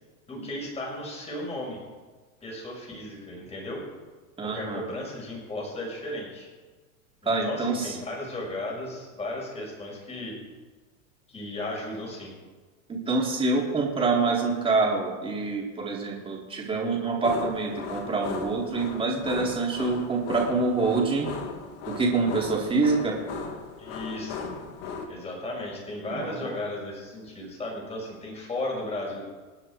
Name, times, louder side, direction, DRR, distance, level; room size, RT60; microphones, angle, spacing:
voice 1, 0.3-1.8 2.4-3.8 4.4-6.5 7.2-10.4 11.3-12.3 23.8-24.5 25.1-29.3, left 1 dB, 15° left, -1 dB, 5.8 m, -35 dB
voice 2, 4.4-4.8 7.3-8.0 12.9-21.3 21.9-23.2 26.1-26.5, right 3 dB, 15° right, -3 dB, 4.0 m, -26 dB
sound 1, 17.2-25.1, left 5 dB, 50° left, 2.5 m, -37 dB
28.5 x 9.9 x 4.8 m, 1.3 s
supercardioid pair, 145°, 40 cm